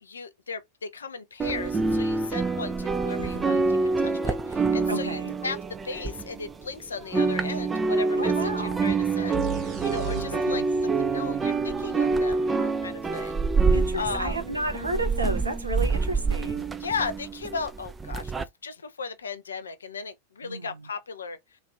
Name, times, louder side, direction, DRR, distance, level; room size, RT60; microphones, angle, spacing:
voice 1, 0.0-9.4 9.8-13.4 13.9-14.4 16.8-18.3 18.6-21.4, left 4 dB, 70° left, 0.5 m, -36 dB
sound 1, 1.4-6.7 7.0-18.4, right 4 dB, 15° right, 0.4 m, -26 dB
voice 2, 3.2-3.7 4.9-5.4 8.2-8.9 10.1-10.6 13.7-16.7 20.4-20.9, right 2 dB, 80° right, 0.7 m, -33 dB
sound 2, 9.3-13.0, right 6 dB, 35° right, 1.0 m, -38 dB
3.1 x 2.5 x 2.2 m
figure-of-eight pair, 90°, 0 cm